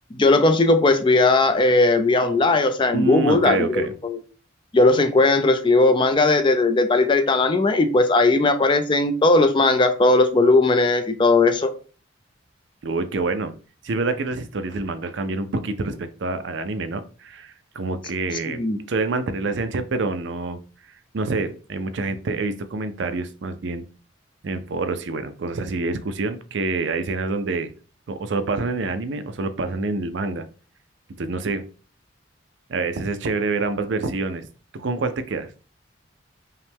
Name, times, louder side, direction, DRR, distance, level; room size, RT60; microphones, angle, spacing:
voice 1, 0.1-4.2 4.7-11.7 18.5-18.8, left 2 dB, 25° left, 8 dB, 0.4 m, -18 dB
voice 2, 2.9-3.9 12.8-13.5 13.8-18.6 18.9-20.6 21.1-23.8 24.4-27.7 28.1-30.5 31.2-31.6 32.7-34.5 34.7-35.5, right 3 dB, 60° right, 10 dB, 0.5 m, -26 dB
5.4 x 2.2 x 3.5 m, 0.38 s
head